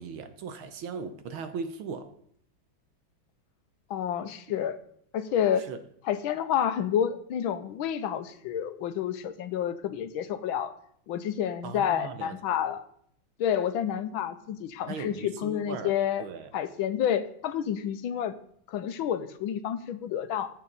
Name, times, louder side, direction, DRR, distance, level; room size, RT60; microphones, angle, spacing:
voice 1, 0.0-2.1 5.6-5.8 11.6-12.4 14.9-15.9 16.2-16.5, right 5 dB, 85° right, 9 dB, 1.9 m, -38 dB
voice 2, 3.9-4.8 5.1-5.6 6.0-10.7 11.1-12.8 13.4-16.2 16.5-18.4 18.7-20.5, left 9 dB, 85° left, 11 dB, 1.6 m, -29 dB
15.0 x 7.6 x 4.0 m, 0.66 s
omnidirectional pair, 2.2 m